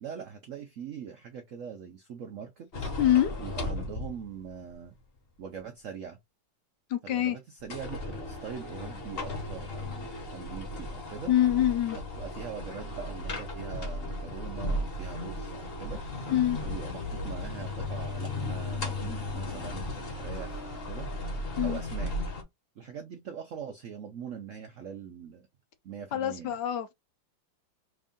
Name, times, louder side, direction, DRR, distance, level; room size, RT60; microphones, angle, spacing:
voice 1, 0.0-2.9 3.4-4.9 5.4-6.2 7.0-11.3 12.1-16.0 16.6-21.1 21.6-22.1 22.8-25.5 25.8-26.6, right 7 dB, 80° right, 0.7 m, -42 dB
sound 1, 2.7-4.5 4.9-5.0 7.6-22.4, left 2 dB, 40° left, 0.9 m, -35 dB
voice 2, 3.0-3.3 6.9-7.4 11.3-12.0 16.3-16.6 21.6-21.8 26.1-26.9, left 12 dB, 70° left, 1.1 m, -25 dB
3.5 x 2.5 x 3.5 m
omnidirectional pair, 2.1 m